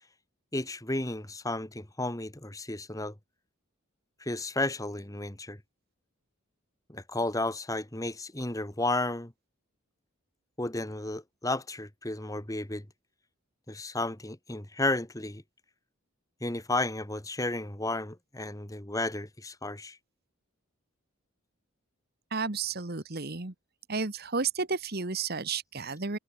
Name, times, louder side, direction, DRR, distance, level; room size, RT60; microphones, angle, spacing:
voice 1, 0.5-3.1 4.2-5.6 6.9-9.3 10.6-12.9 13.7-15.4 16.4-20.0, left 2 dB, 15° left, 1.8 m, -33 dB
voice 2, 22.3-23.5 23.9-26.2, right 4 dB, 45° right, 1.5 m, -32 dB
head